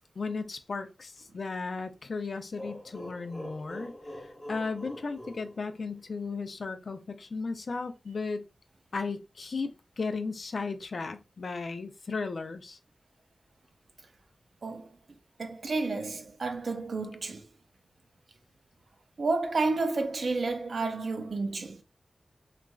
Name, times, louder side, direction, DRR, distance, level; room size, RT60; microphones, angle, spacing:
voice 1, 0.2-3.9 4.5-8.4 8.9-9.7 10.0-12.8, left 4 dB, 65° left, 0.4 m, -35 dB
sound 1, 2.6-6.3, equal, 10° left, 1.0 m, -44 dB
voice 2, 15.4-17.5 19.2-21.8, right 3 dB, 70° right, 0.5 m, -31 dB
3.0 x 2.4 x 2.2 m
wide cardioid pair, 65°, 0 cm